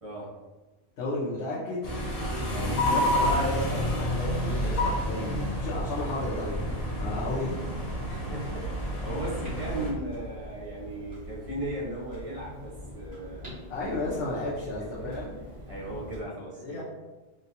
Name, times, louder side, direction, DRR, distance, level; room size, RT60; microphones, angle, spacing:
voice 1, 0.0-0.3 2.5-2.9 8.1-13.6 14.3-14.5 15.0-15.1 15.7-16.8, right 1 dB, 35° right, -4 dB, 0.7 m, -37 dB
voice 2, 1.0-1.8 2.9-6.6 7.0-7.7 13.7-15.4 16.6-16.8, left 2 dB, 70° left, -6 dB, 0.9 m, -33 dB
sound 1, 1.8-9.9, left 1 dB, 40° left, 0.8 m, -29 dB
sound 2, 3.2-8.8, right 1 dB, 90° left, 1.1 m, -45 dB
Clock, 9.4-16.2, left 1 dB, 85° right, 1.9 m, -43 dB
3.8 x 2.3 x 2.8 m, 1.1 s
omnidirectional pair, 1.1 m